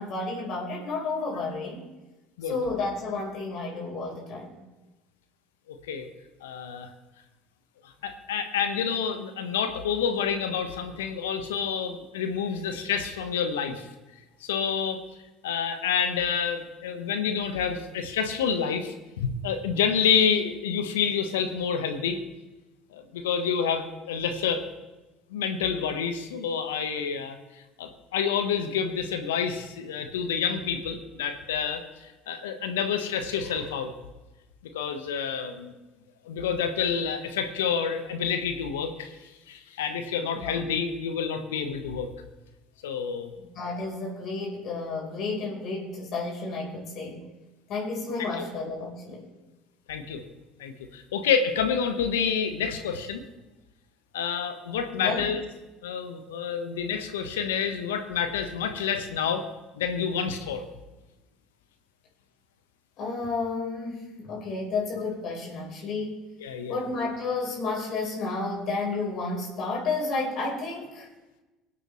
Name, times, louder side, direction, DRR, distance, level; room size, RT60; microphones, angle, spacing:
voice 1, 0.0-1.8 2.5-4.6 40.3-40.6 43.5-47.2 47.7-49.3 55.0-55.2 63.0-66.2 66.7-71.1, left 3 dB, 55° left, -2 dB, 4.4 m, -31 dB
voice 2, 5.7-6.1 6.4-6.9 7.8-13.9 14.4-15.1 15.4-22.2 22.9-24.6 25.3-27.4 27.8-33.9 34.6-35.7 36.2-39.2 39.5-42.1 42.8-43.3 48.3-48.5 49.9-50.2 50.6-53.2 54.1-55.4 55.8-59.5 59.7-60.6 66.4-66.7, left 7 dB, 80° left, 7 dB, 1.2 m, -28 dB
24.0 x 8.3 x 3.2 m, 1.1 s
hypercardioid pair, 65°, 0 cm